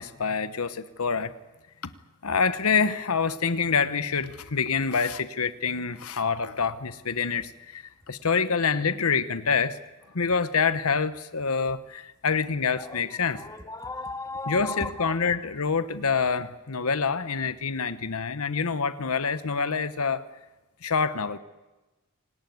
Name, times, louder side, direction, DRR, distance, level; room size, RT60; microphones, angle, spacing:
voice 1, 0.0-1.3 1.8-1.9 2.2-9.8 10.1-13.4 14.5-20.2 20.8-21.4, left 5 dB, 85° left, 12 dB, 1.0 m, -26 dB
voice 2, 12.8-15.2, left 2 dB, 15° left, 6 dB, 1.8 m, -36 dB
27.0 x 19.0 x 9.5 m, 1.1 s
head